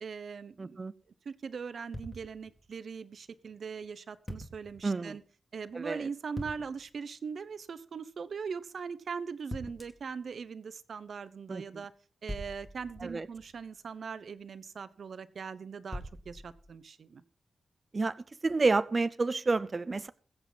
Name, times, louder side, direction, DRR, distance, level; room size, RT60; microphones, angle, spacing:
voice 1, 0.0-0.8 1.2-5.2 5.5-11.9 12.2-17.2, right 5 dB, 55° right, 14 dB, 0.9 m, -40 dB
voice 2, 0.6-0.9 4.8-5.2 5.7-6.1 11.5-11.6 13.0-13.3 17.9-18.2 18.4-20.1, right 3 dB, 30° right, 15 dB, 0.5 m, -29 dB
sound 1, 1.9-2.7 4.3-4.8 6.4-6.9 9.5-10.1 12.3-13.7 15.9-16.8, equal, 10° left, 2.0 m, -43 dB
21.5 x 7.9 x 4.1 m, 0.40 s
wide cardioid pair, 180°, 0 cm